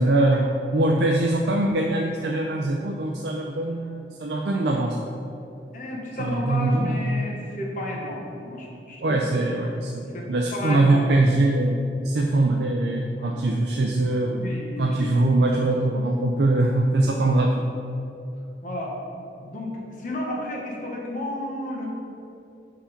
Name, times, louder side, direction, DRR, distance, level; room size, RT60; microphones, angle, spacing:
voice 1, 0.0-5.2 6.2-7.0 9.0-14.5 14.8-17.7, right 2 dB, 75° right, 1 dB, 0.5 m, -22 dB
voice 2, 5.7-9.2 10.1-10.2 10.5-11.0 13.1-13.4 14.1-15.1 18.6-19.0 19.4-21.9, left 1 dB, 45° left, -2 dB, 1.2 m, -32 dB
5.7 x 4.9 x 5.1 m, 2.7 s
head